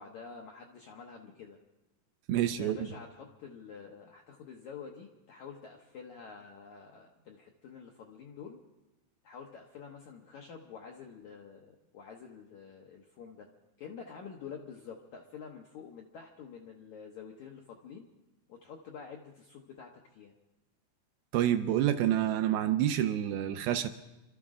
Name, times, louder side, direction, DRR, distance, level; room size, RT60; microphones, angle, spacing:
voice 1, 0.0-1.6 2.4-8.6 9.2-13.5 13.8-18.1 18.5-20.4, left 6 dB, 75° left, 1 dB, 1.7 m, -48 dB
voice 2, 2.3-2.8 21.3-23.9, right 11 dB, 80° right, 8 dB, 2.3 m, -28 dB
27.5 x 13.0 x 3.7 m, 1.0 s
omnidirectional pair, 4.7 m